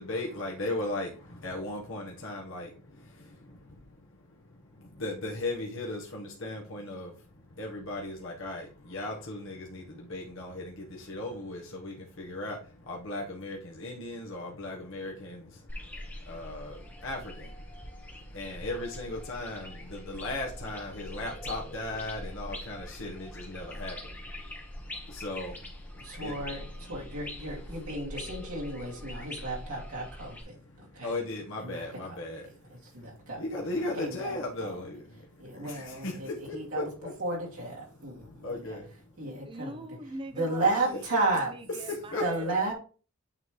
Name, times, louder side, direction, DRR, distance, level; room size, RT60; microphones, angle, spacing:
voice 1, 0.0-27.0 27.5-27.7 29.1-29.4 30.4-37.1 38.4-38.9 40.6-40.7 41.9-42.5, left 2 dB, 60° left, 1.1 m, -38 dB
sound 1, 15.7-30.4, left 1 dB, 10° left, 0.9 m, -43 dB
voice 2, 26.0-31.1 31.6-32.1 32.9-33.4 34.0-34.8 35.4-36.9 37.2-38.1 38.5-38.8 39.2-39.8 40.3-41.5 42.2-42.7, right 2 dB, 80° right, 2.4 m, -33 dB
voice 3, 39.4-42.7, right 1 dB, 20° right, 0.5 m, -43 dB
8.9 x 3.2 x 3.6 m
head